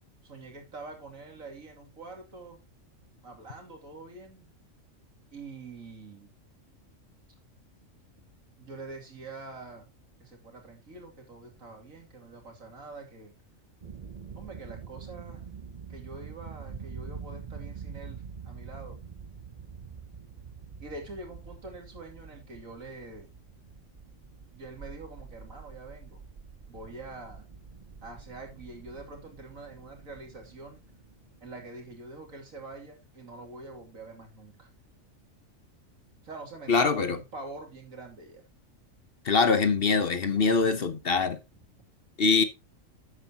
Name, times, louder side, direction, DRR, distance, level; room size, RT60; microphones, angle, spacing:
voice 1, 0.2-2.6 3.2-4.5 5.3-6.3 8.6-9.9 10.2-13.3 14.3-15.5 15.9-19.0 20.8-23.3 24.5-26.2 26.7-27.4 28.0-30.8 31.4-34.7 36.2-38.4, right 3 dB, 85° right, 3.0 m, -45 dB
sound 1, 13.8-32.1, right 6 dB, 40° right, 0.7 m, -46 dB
voice 2, 36.7-37.2 39.2-41.4 42.2-42.4, left 4 dB, 50° left, 1.1 m, -23 dB
12.0 x 8.1 x 2.9 m
omnidirectional pair, 1.4 m